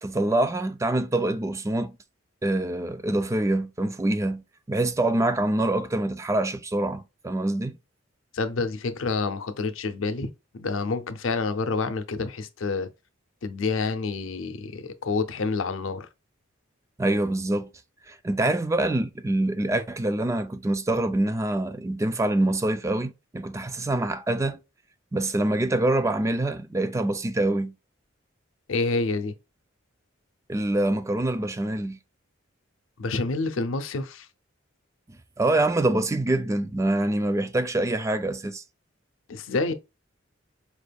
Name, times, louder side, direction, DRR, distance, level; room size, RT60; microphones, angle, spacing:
voice 1, 0.0-1.9 2.4-4.4 4.7-7.8 17.0-17.7 18.1-24.6 25.1-27.7 30.5-32.0 35.4-38.6, right 1 dB, 15° right, 0.3 m, -25 dB
voice 2, 8.3-12.9 13.4-16.1 28.7-29.3 33.0-34.3 39.3-39.7, left 3 dB, 85° left, 0.6 m, -28 dB
4.8 x 3.4 x 2.3 m
head